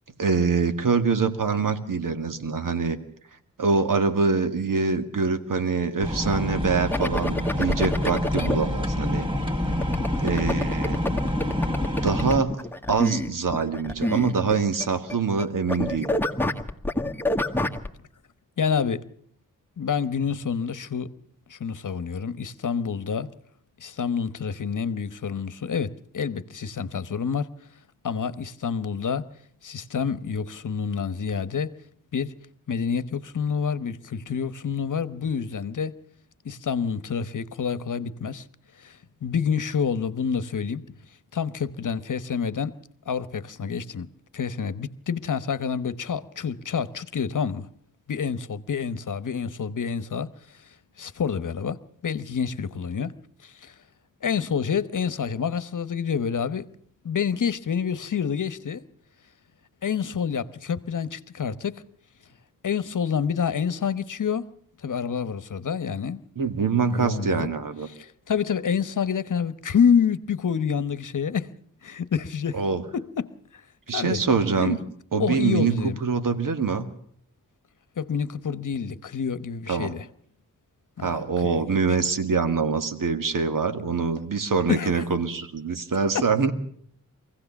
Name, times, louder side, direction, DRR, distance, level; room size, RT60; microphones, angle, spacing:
voice 1, 0.2-3.0 3.6-9.4 10.2-11.0 12.0-16.2 66.4-67.9 72.5-72.8 73.9-74.8 75.1-76.9 79.7-79.9 81.0-86.5, right 5 dB, 70° right, 1.9 m, -24 dB
sound 1, 6.0-12.4, left 1 dB, 15° right, 2.3 m, -27 dB
sound 2, 6.9-8.5 9.8-14.8 15.1-15.4 15.7-17.9, left 1 dB, 5° left, 1.6 m, -28 dB
voice 2, 18.6-19.1 19.8-21.1 21.5-23.3 23.8-27.5 28.0-29.3 29.6-31.8 32.1-32.4 32.7-36.0 36.4-38.4 38.8-40.9 41.3-42.8 43.1-47.7 48.1-50.3 51.0-53.1 53.4-53.7 54.2-56.7 57.0-58.8 59.8-61.8 62.6-64.5 64.8-66.2 66.9-67.5 67.9-71.5 71.8-72.6 72.9-73.6 73.9-74.2 74.6-74.8 75.2-76.0 78.0-80.1 81.0-82.0 84.7-85.0 86.1-86.2, left 6 dB, 65° left, 1.0 m, -28 dB
23.5 x 16.5 x 7.0 m
wide cardioid pair, 80°, 33 cm